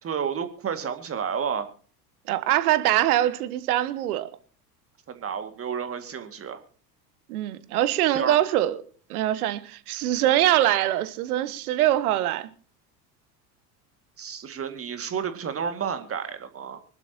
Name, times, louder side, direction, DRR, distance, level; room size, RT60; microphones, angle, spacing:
voice 1, 0.0-1.7 5.1-6.6 8.1-8.4 14.2-16.8, right 7 dB, 25° right, 2.2 m, -31 dB
voice 2, 2.3-4.3 7.3-8.8 9.1-12.5, right 13 dB, 60° right, 1.4 m, -23 dB
25.0 x 11.5 x 2.9 m
figure-of-eight pair, 70°, 50 cm